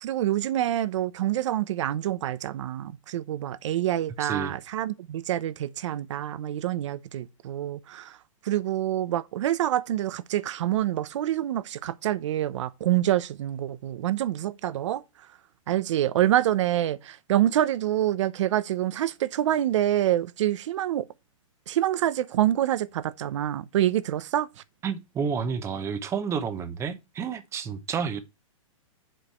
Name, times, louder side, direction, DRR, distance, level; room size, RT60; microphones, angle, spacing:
voice 1, 0.0-8.2 8.4-15.0 15.7-21.0 21.7-24.5, right 12 dB, 60° right, 0.8 m, -26 dB
voice 2, 4.2-4.5 24.8-28.2, right 6 dB, 15° right, 0.9 m, -30 dB
7.6 x 5.1 x 5.6 m
hypercardioid pair, 150°, 18 cm